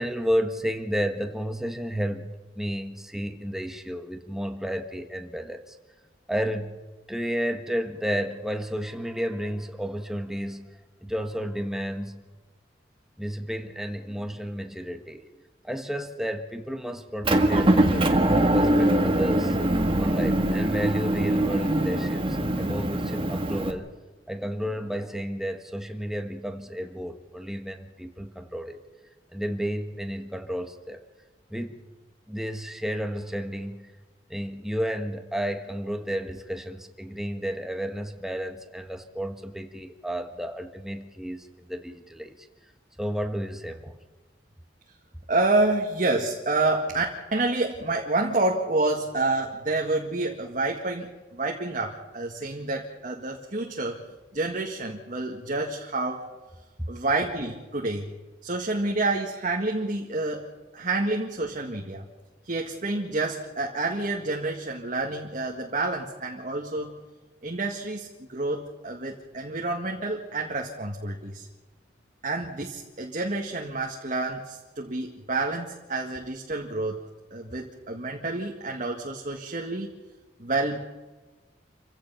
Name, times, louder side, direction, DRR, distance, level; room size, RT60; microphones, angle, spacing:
voice 1, 0.0-5.8 6.3-6.8 7.1-12.2 13.2-15.3 15.6-18.3 18.5-19.6 20.0-23.9 24.3-28.8 29.3-31.0 31.5-31.8 32.3-33.9 34.3-42.5 43.0-44.0, equal, ahead, 6 dB, 1.5 m, -32 dB
Motor vehicle (road) / Engine, 17.2-23.7, right 1 dB, 30° right, 1.7 m, -23 dB
voice 2, 45.3-47.0 47.3-54.0 54.3-56.3 56.9-58.1 58.4-62.0 62.4-67.0 67.4-71.5 72.2-77.0 77.3-79.9 80.4-80.8, right 2 dB, 45° right, 0 dB, 1.9 m, -28 dB
28.5 x 16.0 x 5.7 m, 1.2 s
head